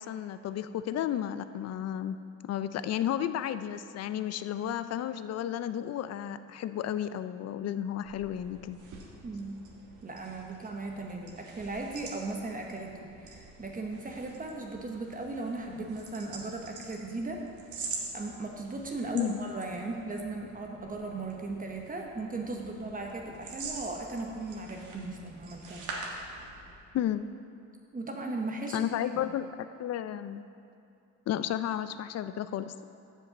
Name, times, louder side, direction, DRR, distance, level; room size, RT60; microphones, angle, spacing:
voice 1, 0.0-2.2 2.4-8.8 19.1-19.4 26.9-27.3 28.7-30.4 31.3-32.9, left 10 dB, 55° left, 12 dB, 0.5 m, -33 dB
sound 1, 7.9-26.8, right 3 dB, 75° right, 1.5 m, -46 dB
voice 2, 9.2-9.6 10.0-17.4 17.7-17.9 18.1-25.9 27.9-28.8, right 2 dB, 30° right, 1 dB, 1.0 m, -37 dB
7.3 x 5.5 x 6.9 m, 2.6 s
cardioid pair, 90°, 30 cm